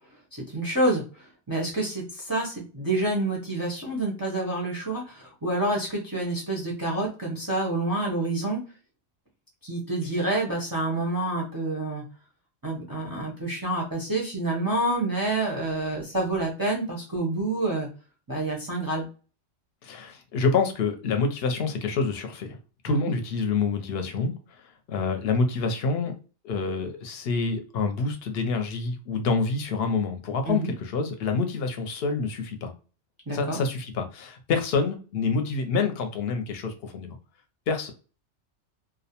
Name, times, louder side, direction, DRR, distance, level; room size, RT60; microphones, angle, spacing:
voice 1, 0.3-8.6 9.6-12.0 12.6-17.9 18.3-19.1 22.9-23.1 30.5-30.7 33.3-33.6, right 2 dB, 30° right, -2 dB, 0.4 m, -28 dB
voice 2, 19.8-22.6 22.8-26.1 26.4-32.7 33.3-37.2 37.7-37.9, left 4 dB, 65° left, 6 dB, 0.7 m, -27 dB
2.3 x 2.1 x 2.8 m, 0.35 s
omnidirectional pair, 1.2 m